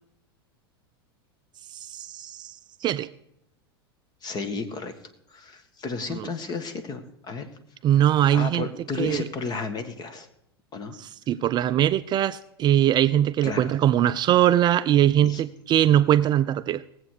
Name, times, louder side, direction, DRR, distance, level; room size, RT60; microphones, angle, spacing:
voice 1, 1.7-2.5 2.8-3.1 7.8-8.6 9.0-9.2 11.3-16.8, right 11 dB, 35° right, 14 dB, 0.4 m, -21 dB
voice 2, 4.2-4.9 5.3-7.5 7.9-8.0 8.3-10.3 10.7-11.0 13.4-13.7 15.2-15.4, left 4 dB, 30° left, 9 dB, 1.6 m, -33 dB
18.5 x 8.0 x 4.9 m, 0.79 s
hypercardioid pair, 95°, 13 cm